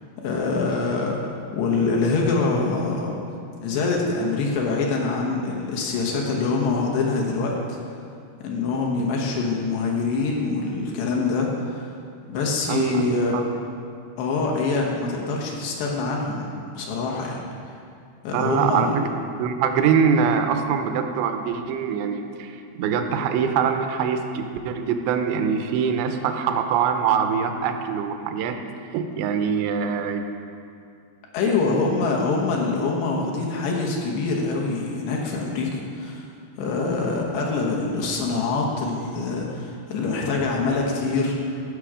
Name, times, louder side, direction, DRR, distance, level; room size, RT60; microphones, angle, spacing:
voice 1, 0.2-3.1 3.6-7.8 8.4-11.9 12.3-13.3 14.2-17.4 18.2-19.0 31.3-36.3 36.6-41.6, left 3 dB, 75° left, -2 dB, 3.0 m, -25 dB
voice 2, 12.7-13.1 13.3-13.4 18.3-19.0 19.4-28.6 28.9-30.2 31.5-31.6, right 7 dB, 85° right, 6 dB, 2.9 m, -23 dB
15.0 x 6.1 x 4.9 m, 2.4 s
omnidirectional pair, 5.2 m